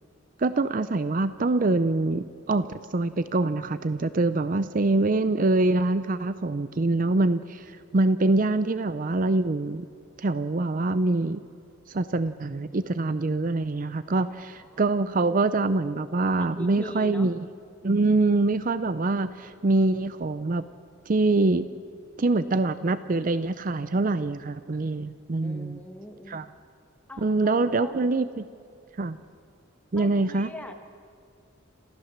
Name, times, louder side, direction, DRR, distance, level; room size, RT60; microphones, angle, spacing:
voice 1, 0.4-9.8 10.2-11.4 11.9-17.4 17.8-20.6 21.1-21.7 22.2-25.8 26.3-26.4 27.2-28.4 29.0-29.2 29.9-30.5, right 2 dB, 40° right, 13 dB, 0.5 m, -24 dB
voice 2, 14.1-14.8 16.4-17.3 25.4-26.4 27.1-28.0 29.9-30.7, left 1 dB, 5° left, 4 dB, 1.6 m, -42 dB
27.5 x 15.0 x 7.3 m, 2.4 s
head